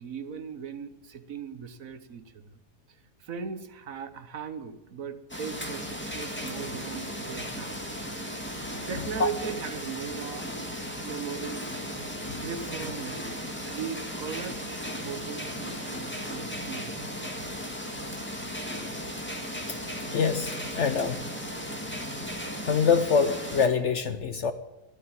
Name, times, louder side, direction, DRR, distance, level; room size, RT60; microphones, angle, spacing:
voice 1, 0.0-2.6 2.9-7.8 8.9-10.5 11.0-11.8 12.4-17.5, right 7 dB, 60° right, 11 dB, 1.3 m, -39 dB
sound 1, 5.3-23.7, equal, 5° left, 2.0 m, -36 dB
voice 2, 20.1-21.2 22.6-24.5, left 6 dB, 55° left, 11 dB, 0.9 m, -25 dB
12.5 x 12.0 x 8.8 m, 1.0 s
omnidirectional pair, 1.7 m